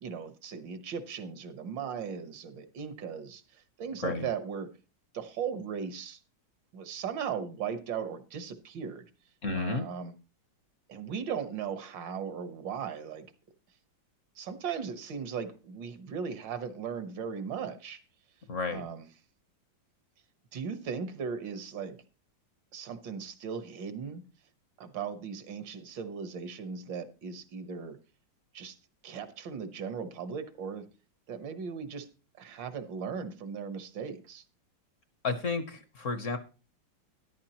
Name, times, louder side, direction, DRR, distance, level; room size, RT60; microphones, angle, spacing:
voice 1, 0.0-4.8 5.1-6.2 6.7-9.1 9.6-10.1 10.9-13.3 14.4-18.0 18.7-19.1 20.5-22.0 22.7-24.2 24.8-28.0 28.5-28.8 29.0-30.9 31.3-32.1 32.4-34.4, right 6 dB, 75° right, 1.8 m, -37 dB
voice 2, 9.4-9.8 18.5-18.8 35.2-36.4, left 3 dB, 50° left, 1.1 m, -32 dB
13.0 x 10.5 x 2.9 m
omnidirectional pair, 2.0 m